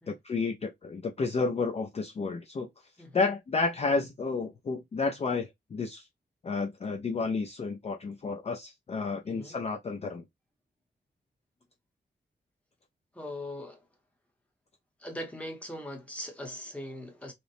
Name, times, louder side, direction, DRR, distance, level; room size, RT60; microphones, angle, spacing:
voice 1, 0.1-2.7 3.1-6.0 6.4-10.2, left 4 dB, 35° left, 0.4 m, -31 dB
voice 2, 13.1-13.8 15.0-17.3, left 1 dB, 5° left, 0.7 m, -40 dB
2.9 x 2.0 x 2.5 m
wide cardioid pair, 165°, 18 cm